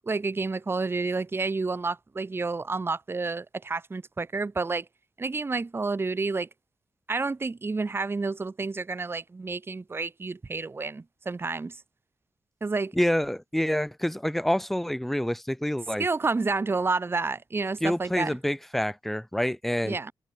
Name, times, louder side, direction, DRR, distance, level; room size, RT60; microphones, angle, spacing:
voice 1, 0.1-4.9 5.2-6.5 7.1-11.8 12.6-12.9 16.0-18.4 19.8-20.1, right 3 dB, 25° right, 0.8 m, -29 dB
voice 2, 12.9-16.1 17.8-20.0, equal, 5° left, 0.5 m, -27 dB
wide cardioid pair, 125°, 9 cm